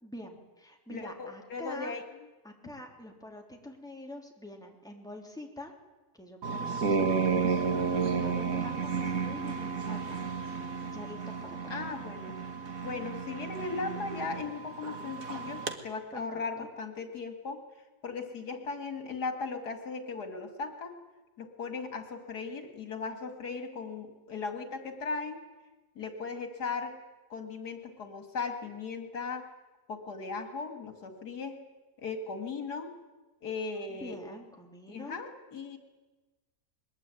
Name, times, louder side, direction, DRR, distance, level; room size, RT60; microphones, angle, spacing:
voice 1, 0.0-2.0 2.4-5.7 6.2-10.2 10.9-11.8 16.1-16.7 33.9-35.2, left 1 dB, ahead, 1 dB, 3.3 m, -46 dB
voice 2, 0.9-2.0 11.7-12.4 12.8-17.6 18.0-20.9 21.4-25.4 26.0-26.9 27.3-29.4 29.9-31.6 32.0-32.9 33.4-34.2 34.9-35.8, left 4 dB, 75° left, 6 dB, 2.8 m, -37 dB
sound 1, 6.4-15.7, right 5 dB, 55° right, 2.1 m, -32 dB
22.0 x 21.0 x 9.2 m, 1.2 s
omnidirectional pair, 1.7 m